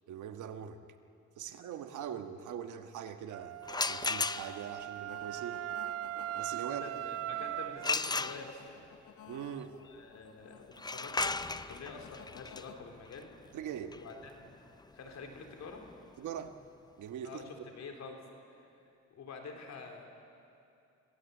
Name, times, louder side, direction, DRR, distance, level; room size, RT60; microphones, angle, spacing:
voice 1, 0.1-0.8 1.4-3.5 3.9-5.6 6.3-6.9 9.3-9.7 13.5-13.9 16.2-16.5 17.0-17.5, right 9 dB, 80° right, 8 dB, 1.4 m, -42 dB
Wind instrument woodwind instrument, 3.3-8.0, right 13 dB, 55° right, 0.4 m, -39 dB
sound 1, 3.6-4.8 7.8-8.9 10.7-16.4, left 3 dB, 15° left, 0.5 m, -36 dB
sound 2, 4.3-12.8, left 10 dB, 80° left, 1.2 m, -56 dB
voice 2, 6.6-8.8 9.7-13.3 14.0-14.6 14.9-15.8 17.2-18.2 18.5-18.8 19.1-20.1, left 4 dB, 65° left, 3 dB, 3.8 m, -47 dB
25.5 x 17.0 x 8.3 m, 2.6 s
cardioid pair, 90°, 30 cm